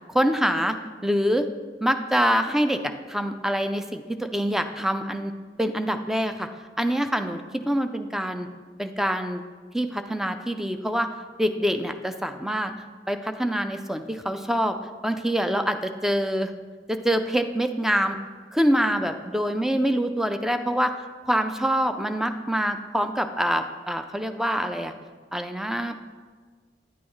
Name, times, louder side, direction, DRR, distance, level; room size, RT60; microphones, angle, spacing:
voice 1, 0.1-0.8 1.0-1.5 1.8-2.8 3.1-5.3 5.6-6.5 6.8-8.5 8.8-9.4 9.7-11.1 11.4-12.7 13.1-14.8 15.0-16.5 16.9-18.2 18.5-20.9 21.3-24.9 25.3-26.0, equal, ahead, 7 dB, 0.4 m, -25 dB
10.0 x 8.5 x 3.1 m, 1.5 s
head